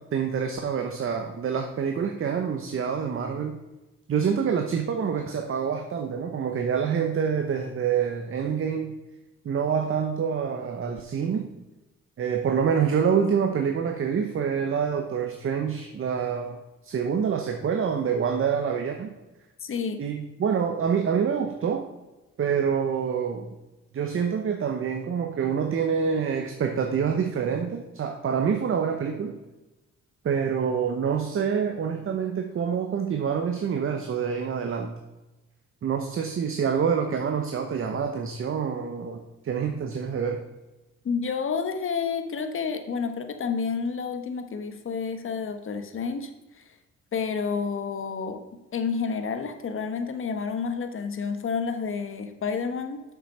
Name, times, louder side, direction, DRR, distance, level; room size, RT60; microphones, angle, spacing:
voice 1, 0.0-3.6 4.1-8.9 9.4-11.5 12.2-16.6 16.8-19.1 20.0-21.9 22.4-23.5 23.9-29.4 30.2-35.0 35.8-40.4, right 7 dB, 45° right, 5 dB, 0.9 m, -26 dB
voice 2, 19.6-20.0 41.0-46.6 47.1-48.4 48.7-53.0, left 5 dB, 45° left, 7 dB, 1.2 m, -30 dB
7.3 x 6.1 x 5.5 m, 1.1 s
cardioid pair, 90°, 30 cm